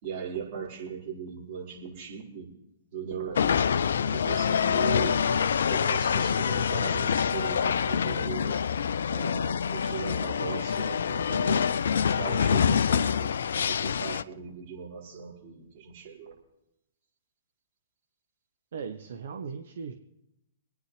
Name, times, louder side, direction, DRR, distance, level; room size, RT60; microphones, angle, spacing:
voice 1, 0.0-2.5 2.9-3.6 4.1-8.6 9.1-11.7 12.1-16.3, right 7 dB, 50° right, -3 dB, 4.7 m, -39 dB
sound 1, 3.3-14.2, left 7 dB, 70° left, 0.4 m, -26 dB
voice 2, 12.5-12.9 18.7-19.9, right 6 dB, 65° right, 6 dB, 1.0 m, -37 dB
25.5 x 9.7 x 3.3 m, 0.87 s
figure-of-eight pair, 115°, 0 cm